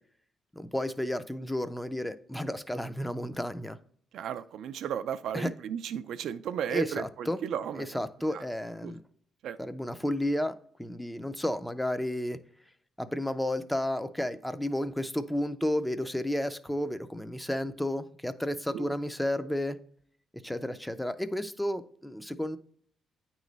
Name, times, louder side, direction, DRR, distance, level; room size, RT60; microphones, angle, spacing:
voice 1, 0.5-3.8 5.3-5.5 6.7-7.4 7.8-9.0 9.6-10.5 10.8-12.4 13.0-19.8 20.4-22.6, left 1 dB, 5° left, 11 dB, 0.4 m, -32 dB
voice 2, 4.1-7.9 8.3-8.4 8.8-8.9 9.4-9.6 18.7-18.9, right 9 dB, 75° right, 11 dB, 0.3 m, -34 dB
8.9 x 3.1 x 3.9 m, 0.62 s
cardioid pair, 90°, 0 cm